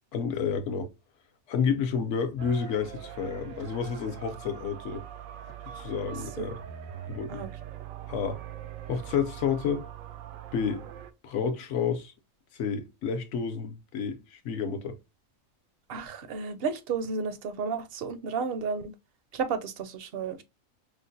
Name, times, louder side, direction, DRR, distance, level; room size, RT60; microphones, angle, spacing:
voice 1, 0.1-0.9 1.5-5.0 5.8-6.6 7.1-7.5 8.1-8.4 8.9-9.9 10.5-10.8 11.2-12.1 12.5-14.9, left 6 dB, 65° left, 0.9 m, -30 dB
sound 1, 2.4-11.1, right 10 dB, 90° right, 1.0 m, -42 dB
voice 2, 15.9-18.9 19.3-20.4, right 5 dB, 60° right, 0.6 m, -32 dB
5.0 x 2.1 x 2.6 m
omnidirectional pair, 1.4 m